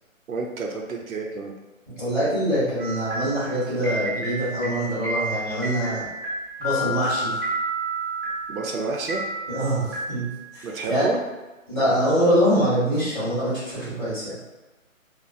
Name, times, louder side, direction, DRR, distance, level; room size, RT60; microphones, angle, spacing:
voice 1, 0.3-1.5 8.5-9.2 10.6-11.2, right 3 dB, 85° right, 2 dB, 0.6 m, -29 dB
voice 2, 2.0-6.1 6.6-7.3 9.5-10.6 10.9-11.1 11.7-14.4, equal, 10° left, -14 dB, 1.5 m, -24 dB
sound 1, 2.8-10.7, right 1 dB, 15° right, 1.4 m, -31 dB
3.1 x 2.2 x 2.6 m, 1.1 s
hypercardioid pair, 170°, 41 cm